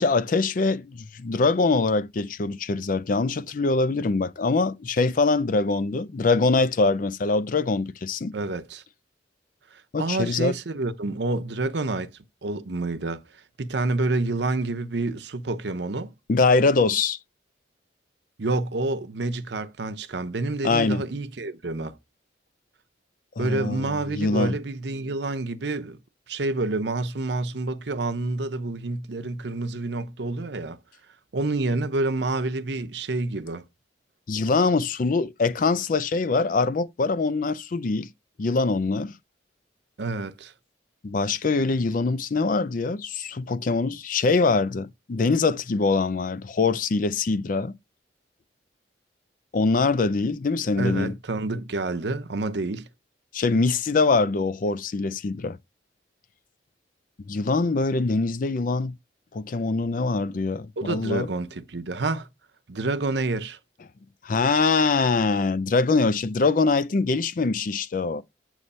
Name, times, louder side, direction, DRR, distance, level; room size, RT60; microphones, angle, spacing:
voice 1, 0.0-8.3 9.9-10.6 16.3-17.2 20.6-21.0 23.4-24.5 34.3-38.1 38.4-39.1 41.0-47.7 49.5-51.1 53.3-55.6 57.3-58.9 59.3-61.3 64.2-68.2, left 3 dB, 45° left, 0.4 m, -23 dB
voice 2, 8.3-8.8 9.7-12.1 12.4-13.2 13.6-16.1 18.4-22.0 23.4-26.0 26.3-30.8 31.3-33.6 40.0-40.5 50.8-52.9 60.8-62.3 62.7-63.6, right 2 dB, 65° right, 0.7 m, -28 dB
8.2 x 3.1 x 5.4 m
head